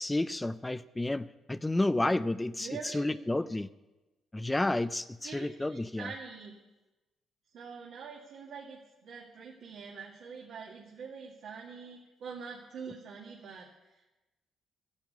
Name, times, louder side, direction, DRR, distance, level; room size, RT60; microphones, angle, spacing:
voice 1, 0.0-2.7 2.9-3.7 4.3-6.1, left 2 dB, 15° left, 13 dB, 0.5 m, -31 dB
voice 2, 2.6-3.2 5.2-6.5 7.5-13.7, right 5 dB, 70° right, -3 dB, 2.2 m, -45 dB
13.5 x 10.5 x 8.1 m, 1.1 s
cardioid pair, 90°, 0 cm